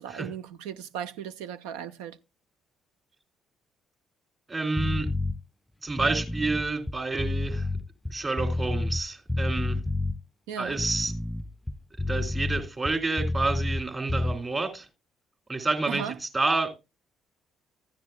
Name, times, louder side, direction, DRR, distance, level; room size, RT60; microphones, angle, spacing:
voice 1, 0.0-2.2 10.5-10.8 15.9-16.1, right 9 dB, 80° right, 0.5 m, -36 dB
voice 2, 4.5-5.1 5.8-7.7 8.1-9.8 10.6-11.1 12.0-14.9 15.5-16.7, right 3 dB, 30° right, 2.7 m, -29 dB
sound 1, 4.8-5.4 5.9-9.0 9.3-10.2 10.7-13.8 14.1-14.4, left 2 dB, 10° left, 0.5 m, -29 dB
14.5 x 10.0 x 2.2 m
hypercardioid pair, 50°, 0 cm